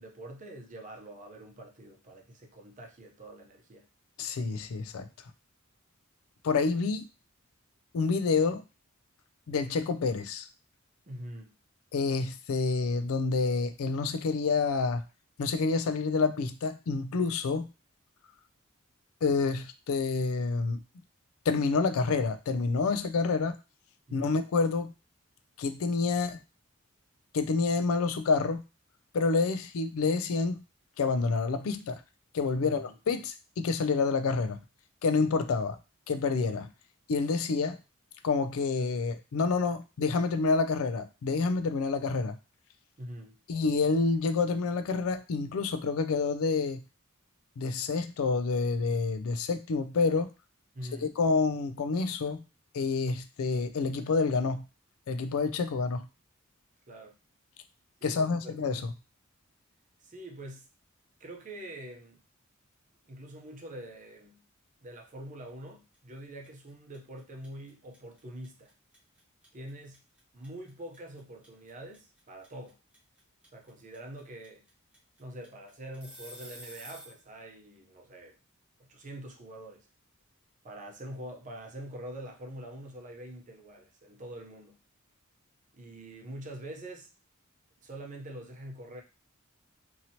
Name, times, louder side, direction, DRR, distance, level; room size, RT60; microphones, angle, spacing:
voice 1, 0.0-3.9 11.1-11.5 24.1-24.4 32.6-33.0 43.0-43.4 50.7-51.1 56.9-57.1 58.0-58.7 60.0-60.7 61.2-62.2 63.1-64.4 64.8-68.7 69.5-70.0 70.3-72.8 73.5-74.6 75.2-78.4 78.8-79.9 80.6-84.8 85.7-87.1 87.8-89.0, right 1 dB, 35° right, 1 dB, 0.7 m, -45 dB
voice 2, 4.2-5.1 6.4-7.0 7.9-8.6 9.5-10.5 11.9-15.0 15.4-17.7 19.2-20.8 21.5-23.6 24.1-24.9 25.6-26.4 27.3-28.6 29.1-30.6 31.0-32.0 32.3-34.6 35.0-35.8 36.1-36.7 37.1-37.8 38.2-42.3 43.5-46.8 47.6-50.3 50.9-52.4 52.7-54.6 55.1-56.1 58.0-58.9, left 4 dB, 75° left, 10 dB, 0.4 m, -28 dB
sound 1, 65.9-66.2 66.4-77.2, right 1 dB, 5° right, 0.9 m, -49 dB
2.8 x 2.8 x 2.7 m, 0.29 s
head